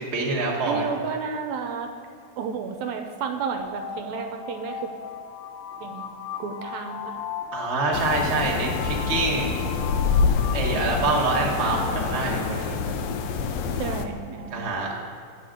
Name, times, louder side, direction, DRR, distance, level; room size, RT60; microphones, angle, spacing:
voice 1, 0.0-0.8 7.5-9.6 10.5-12.8 14.5-14.9, right 3 dB, 45° right, -3 dB, 0.8 m, -26 dB
voice 2, 0.7-1.9 2.4-4.9 5.8-7.2 13.8-14.8, right 5 dB, 80° right, 6 dB, 1.8 m, -32 dB
sound 1, 3.4-11.9, left 8 dB, 60° left, 1.8 m, -36 dB
sound 2, 7.9-14.1, left 5 dB, 80° left, 1.5 m, -26 dB
8.4 x 6.6 x 5.1 m, 2.4 s
omnidirectional pair, 3.4 m